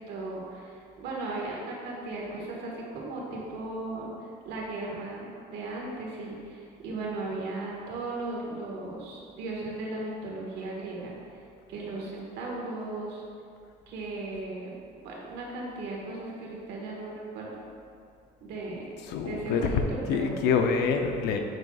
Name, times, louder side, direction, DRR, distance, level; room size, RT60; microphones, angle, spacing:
voice 1, 0.0-13.2 13.9-14.7 15.0-17.5 18.4-18.9 19.2-20.3, right 2 dB, 80° right, -3 dB, 1.5 m, -37 dB
voice 2, 19.1-19.8 20.1-21.4, left 6 dB, 85° left, 5 dB, 0.6 m, -26 dB
7.7 x 6.0 x 2.4 m, 2.4 s
cardioid pair, 110°, 17 cm